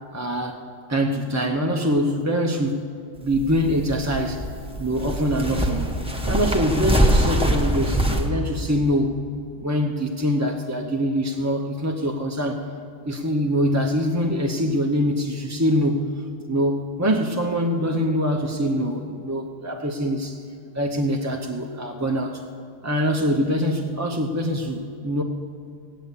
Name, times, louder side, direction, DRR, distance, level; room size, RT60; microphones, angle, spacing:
voice 1, 0.1-0.6 0.9-2.8 3.2-4.4 4.8-5.9 6.2-9.2 9.6-12.6 13.1-16.1 16.5-20.4 20.7-22.4 22.8-25.2, equal, 20° right, 1 dB, 0.4 m, -24 dB
sound 1, 3.2-8.3, right 1 dB, 5° right, 0.9 m, -23 dB
17.0 x 9.1 x 8.3 m, 2.4 s
omnidirectional pair, 1.6 m